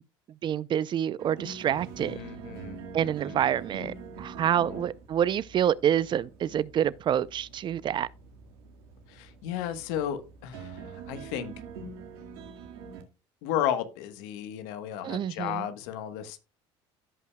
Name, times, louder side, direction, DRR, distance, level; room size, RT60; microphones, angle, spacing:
voice 1, 0.4-2.2 2.9-8.1 15.0-15.6, right 10 dB, 40° right, 0.5 m, -27 dB
sound 1, 1.2-13.0, right 5 dB, 85° right, 1.9 m, -45 dB
voice 2, 2.0-3.4 4.6-4.8 9.1-11.5 13.4-16.4, left 10 dB, 80° left, 1.2 m, -34 dB
16.5 x 5.6 x 2.3 m
supercardioid pair, 95°, 12 cm